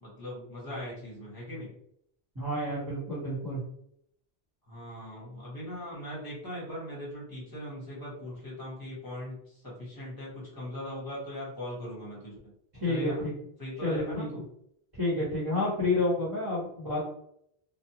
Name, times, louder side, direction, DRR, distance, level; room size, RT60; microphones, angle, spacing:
voice 1, 0.0-1.7 4.7-12.4 12.9-13.2 13.6-14.4, left 1 dB, 20° left, -6 dB, 1.1 m, -40 dB
voice 2, 2.3-3.6 12.7-13.3 13.8-14.3 15.0-17.0, left 2 dB, 20° right, -9 dB, 1.0 m, -29 dB
2.4 x 2.3 x 2.8 m, 0.72 s
omnidirectional pair, 1.1 m